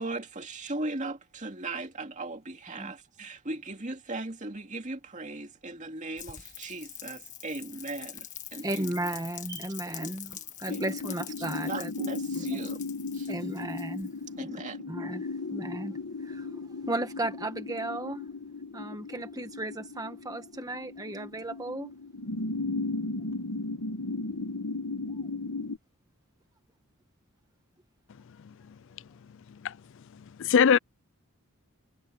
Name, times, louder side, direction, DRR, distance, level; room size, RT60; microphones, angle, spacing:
voice 1, 0.0-8.9 9.8-10.2 10.7-10.8 11.7-12.8 13.1-13.3 14.4-14.9, right 2 dB, 35° right, 2.4 m, -38 dB
Rain, 6.2-14.3, left 11 dB, 35° left, 1.6 m, -45 dB
voice 2, 8.6-11.9 12.3-12.6 13.3-14.1 14.9-18.3 18.7-21.9, right 1 dB, 15° right, 1.2 m, -35 dB
sound 1, 10.7-25.8, left 3 dB, 85° left, 1.3 m, -36 dB
voice 3, 28.4-28.8 29.5-29.8 30.1-30.8, left 7 dB, 55° left, 0.4 m, -24 dB
head